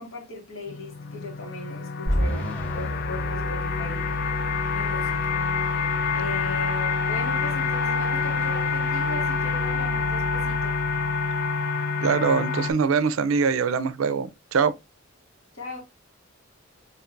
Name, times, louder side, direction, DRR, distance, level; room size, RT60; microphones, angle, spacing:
voice 1, 0.0-4.1 4.7-5.4 6.1-10.8 15.5-15.8, left 2 dB, 70° left, 1.6 m, -38 dB
sound 1, 0.7-12.7, left 5 dB, 50° left, 0.4 m, -27 dB
sound 2, 2.1-11.4, equal, 10° left, 2.1 m, -33 dB
voice 2, 12.0-14.7, right 5 dB, 85° right, 0.4 m, -23 dB
4.4 x 2.8 x 2.4 m
head